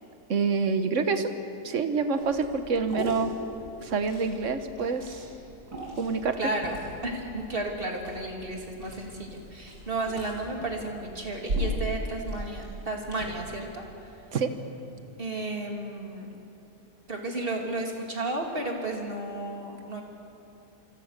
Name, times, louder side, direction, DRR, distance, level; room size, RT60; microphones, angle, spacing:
voice 1, 0.3-1.3 1.6-3.3 3.8-5.2 6.0-6.4 14.3-14.5, right 5 dB, 50° right, 8 dB, 1.6 m, -27 dB
Liquid, 2.1-13.2, equal, 80° right, 6.9 m, -38 dB
voice 2, 6.4-13.8 15.2-16.3 17.1-20.0, right 2 dB, 35° right, 1 dB, 3.0 m, -33 dB
28.0 x 23.5 x 6.7 m, 2.8 s
omnidirectional pair, 1.7 m